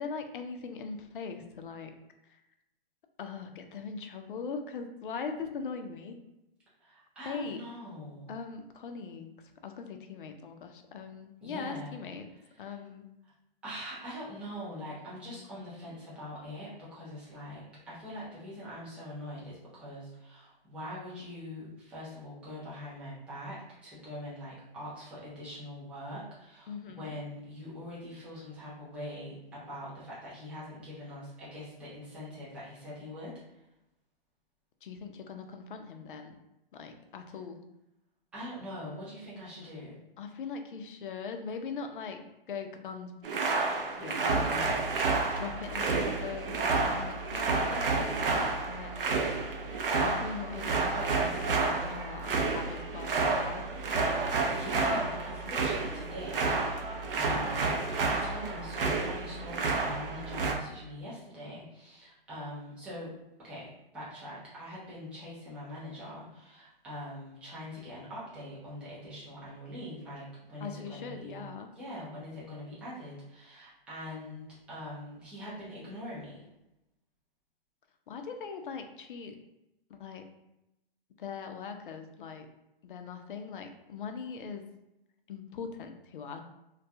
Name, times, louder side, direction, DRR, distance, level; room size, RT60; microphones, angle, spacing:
voice 1, 0.0-1.9 2.2-2.4 3.2-6.2 7.2-7.6 8.3-9.4 9.6-12.3 12.6-13.1 26.7-27.2 34.8-36.4 36.7-37.6 40.2-43.4 44.0-49.1 50.0-53.6 70.6-71.7 78.1-79.4 79.9-80.3 81.2-82.5 82.8-84.7 85.3-86.4, left 5 dB, 60° left, 6 dB, 0.4 m, -41 dB
voice 2, 6.8-8.3 11.4-12.0 12.6-12.8 13.6-33.6 36.8-36.9 38.3-40.0 54.5-63.1 63.4-71.4 71.7-76.4, left 1 dB, 5° right, -9 dB, 0.3 m, -43 dB
sound 1, 43.2-60.5, right 3 dB, 65° right, 0.6 m, -30 dB
2.2 x 2.2 x 2.6 m, 0.91 s
hypercardioid pair, 135°, 30 cm